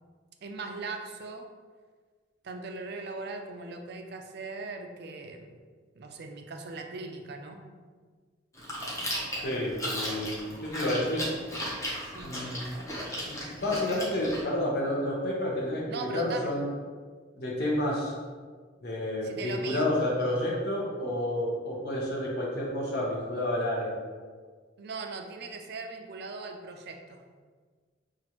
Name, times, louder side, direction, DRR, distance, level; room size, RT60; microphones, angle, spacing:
voice 1, 0.4-1.5 2.4-5.6 5.9-7.6 12.0-12.4 15.9-16.5 19.2-19.9 24.8-27.4, right 3 dB, 55° right, 4 dB, 0.4 m, -39 dB
Chewing mastication, 8.6-14.4, equal, 15° left, 0.8 m, -36 dB
voice 2, 9.4-11.3 12.2-12.8 13.3-16.7 17.4-18.1 18.8-23.9, left 1 dB, 55° left, -4 dB, 0.9 m, -30 dB
5.8 x 2.5 x 2.9 m, 1.5 s
head